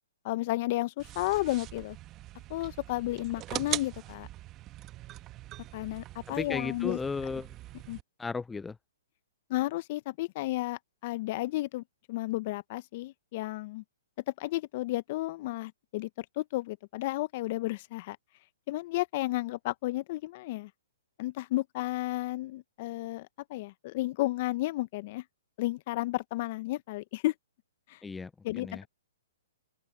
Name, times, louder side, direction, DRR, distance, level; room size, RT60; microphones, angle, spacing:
voice 1, 0.2-2.0 2.5-4.3 5.7-7.0 7.9-8.0 9.5-13.8 14.3-18.2 18.7-20.7 21.2-25.2 25.6-27.3 27.9-28.0 28.4-28.9, left 18 dB, 45° left, 1.0 m, -32 dB
sound 1, 1.0-8.0, right 15 dB, 25° right, 1.3 m, -41 dB
voice 2, 6.3-7.5 8.2-8.8 28.0-28.8, left 4 dB, 10° left, 0.5 m, -35 dB
open air
hypercardioid pair, 130°, 0 cm